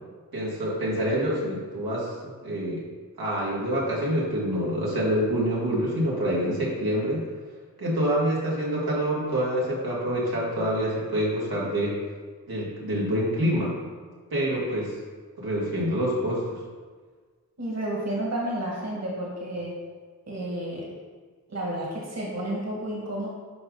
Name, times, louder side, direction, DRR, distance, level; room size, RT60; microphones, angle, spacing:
voice 1, 0.3-2.8 3.2-7.2 7.8-12.0 12.5-13.7 14.3-15.0 15.4-16.6, equal, 85° right, -6 dB, 2.5 m, -26 dB
voice 2, 17.6-19.8 20.3-20.8 21.5-23.3, right 1 dB, 45° right, -4 dB, 2.1 m, -31 dB
10.5 x 5.0 x 4.0 m, 1.5 s
wide cardioid pair, 85°, 36 cm